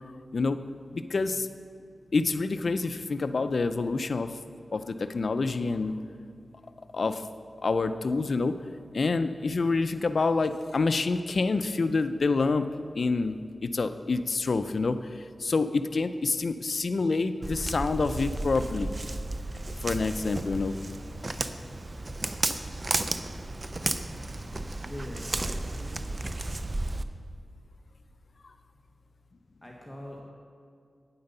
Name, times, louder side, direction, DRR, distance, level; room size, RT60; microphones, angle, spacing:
voice 1, 0.9-1.5 2.1-4.3 4.7-6.0 6.9-7.2 7.6-8.6 8.9-12.7 13.0-13.4 13.6-15.0 15.4-18.9 19.8-20.7, left 3 dB, 65° left, 10 dB, 0.4 m, -27 dB
Walk footsteps, 17.4-27.0, right 2 dB, 40° right, 0.5 m, -33 dB
voice 2, 24.8-26.1 29.6-30.3, left 1 dB, 10° left, -2 dB, 1.2 m, -43 dB
9.7 x 7.8 x 5.4 m, 2.3 s
wide cardioid pair, 65°, 0 cm